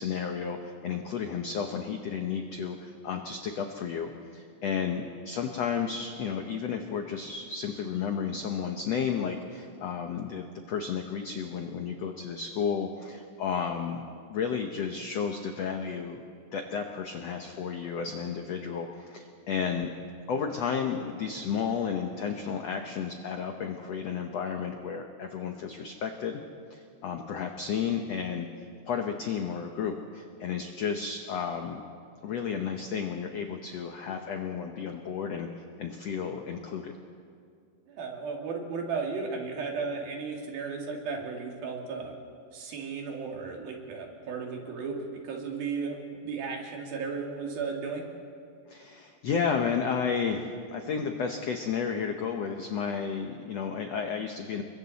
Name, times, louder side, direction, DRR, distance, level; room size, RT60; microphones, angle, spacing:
voice 1, 0.0-16.2 16.5-19.9 20.3-26.4 26.7-28.5 28.9-31.8 32.2-35.5 35.8-36.9 48.7-54.6, left 6 dB, 75° left, 4 dB, 1.5 m, -32 dB
voice 2, 37.9-42.1 42.5-48.0, right 5 dB, 70° right, 0 dB, 4.0 m, -35 dB
29.5 x 23.0 x 4.1 m, 2.3 s
omnidirectional pair, 4.4 m